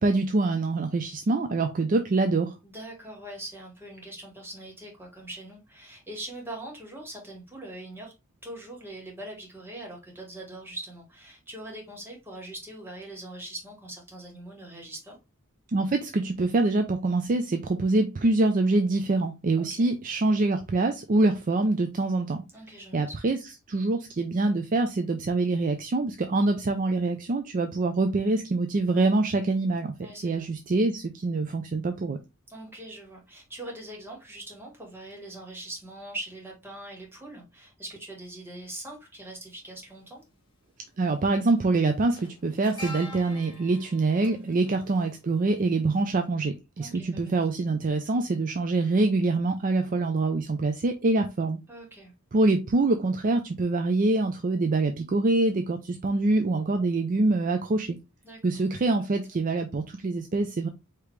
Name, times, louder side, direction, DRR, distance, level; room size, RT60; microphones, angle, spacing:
voice 1, 0.0-2.5 15.7-22.4 22.9-23.4 23.7-29.9 30.2-32.2 41.0-51.6 52.3-58.0 58.4-60.7, right 2 dB, 40° right, 0.4 m, -25 dB
voice 2, 2.6-8.1 8.4-15.2 19.6-19.9 22.5-23.2 30.0-30.5 32.5-40.2 44.3-44.6 46.8-47.3 51.7-52.1 56.1-56.2 58.2-58.4, right 1 dB, 10° right, 1.8 m, -42 dB
sound 1, 39.6-39.7 41.0-41.2 41.5-45.8 46.1-46.2, left 1 dB, 20° left, 1.9 m, -45 dB
4.9 x 2.9 x 3.3 m
head